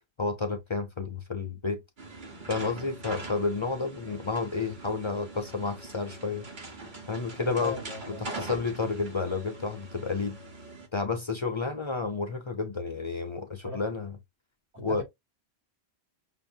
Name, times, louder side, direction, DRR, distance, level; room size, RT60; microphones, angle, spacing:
voice 1, 0.2-1.8 2.5-6.5 7.1-7.8 8.1-10.4 10.9-14.2 14.8-15.0, left 4 dB, 40° left, 0.4 m, -31 dB
sound 1, 2.0-10.9, right 2 dB, 45° right, 1.2 m, -43 dB
voice 2, 7.4-8.3 13.6-13.8 14.7-15.0, left 3 dB, 80° right, 2.2 m, -39 dB
6.0 x 2.1 x 2.7 m
omnidirectional pair, 1.1 m